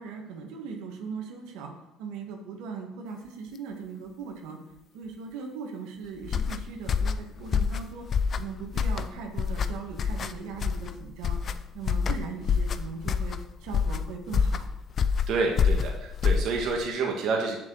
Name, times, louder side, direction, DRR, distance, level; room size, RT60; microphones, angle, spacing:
voice 1, 0.0-1.7 2.0-4.6 4.9-8.1 8.4-11.4 11.7-14.7, right 5 dB, 85° right, 2 dB, 1.7 m, -39 dB
sound 1, 6.2-16.9, left 6 dB, 45° left, 0.5 m, -27 dB
voice 2, 15.3-17.6, right 4 dB, 65° right, 0 dB, 1.5 m, -28 dB
7.4 x 6.1 x 6.4 m, 0.90 s
supercardioid pair, 95°, 0 cm